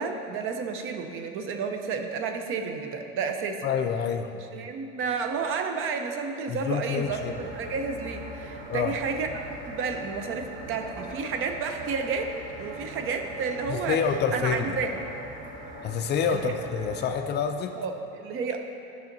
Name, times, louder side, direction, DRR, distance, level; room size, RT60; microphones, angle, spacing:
voice 1, 0.0-3.7 4.5-12.3 12.6-14.0 14.3-15.0 16.3-16.5 17.8-18.6, right 5 dB, 45° right, 5 dB, 0.7 m, -31 dB
voice 2, 3.6-4.3 6.5-7.3 8.7-8.9 13.7-14.8 15.8-17.7, left 7 dB, 35° left, 6 dB, 0.4 m, -27 dB
sound 1, 6.9-17.1, right 1 dB, 80° right, 1.3 m, -41 dB
10.5 x 5.6 x 2.7 m, 2.7 s
supercardioid pair, 110°, 29 cm